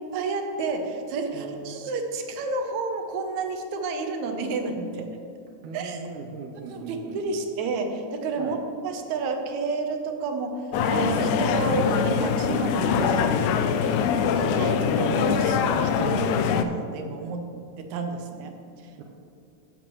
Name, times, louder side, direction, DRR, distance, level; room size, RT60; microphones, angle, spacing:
voice 1, 0.1-5.1 5.7-6.0 6.7-8.6 8.8-10.6 10.9-14.0 14.4-17.5 17.8-18.6, right 3 dB, 75° right, 5 dB, 2.1 m, -30 dB
voice 2, 1.3-1.8 5.6-7.4 8.4-8.6 13.8-14.0 19.0-19.1, right 4 dB, 90° right, 0 dB, 2.2 m, -39 dB
sound 1, 10.7-16.6, left 7 dB, 85° left, 2.0 m, -23 dB
15.0 x 7.1 x 3.1 m, 2.5 s
omnidirectional pair, 3.5 m